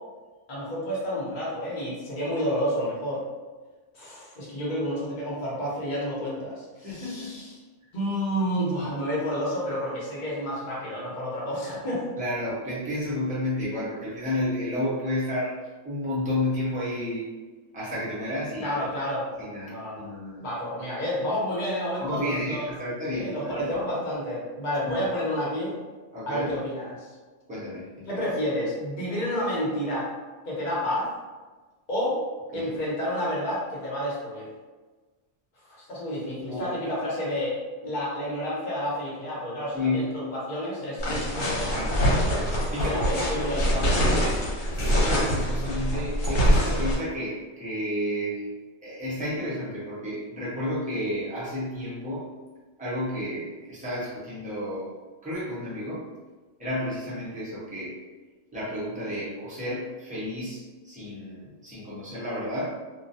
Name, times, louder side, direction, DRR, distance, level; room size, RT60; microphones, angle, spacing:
voice 1, 0.5-3.3 3.9-7.6 7.9-12.0 18.6-19.3 19.6-20.1 20.4-22.7 23.1-25.8 26.3-27.1 28.0-30.1 30.4-31.1 31.9-32.2 32.5-34.5 35.6-41.9 42.7-44.1, equal, 40° left, -7 dB, 0.9 m, -30 dB
voice 2, 6.8-7.4 12.2-15.6 15.8-17.4 17.7-18.7 19.4-20.4 22.0-23.7 24.8-24.9 26.1-26.5 27.5-28.1 32.5-32.7 36.5-36.7 39.7-40.2 41.7-42.0 42.7-43.3 44.8-48.5 48.8-52.3 52.8-54.9 55.2-56.1 56.6-58.0 58.5-62.8, left 1 dB, 10° right, -9 dB, 0.5 m, -31 dB
sound 1, 41.0-46.9, equal, 85° left, 1.1 m, -24 dB
2.3 x 2.2 x 2.6 m, 1.3 s
omnidirectional pair, 1.3 m